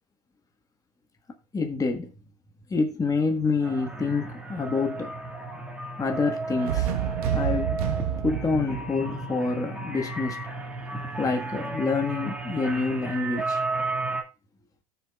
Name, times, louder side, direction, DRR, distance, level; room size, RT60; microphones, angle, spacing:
voice 1, 1.5-2.1 2.7-5.1 6.0-6.9 7.3-7.8 8.2-10.4 11.1-13.6, left 4 dB, 20° left, 1.4 m, -27 dB
sound 1, 3.6-14.2, right 3 dB, 5° right, 1.9 m, -33 dB
sound 2, 6.6-10.4, right 10 dB, 70° right, 1.3 m, -30 dB
17.0 x 7.1 x 2.4 m
hypercardioid pair, 85°, 19 cm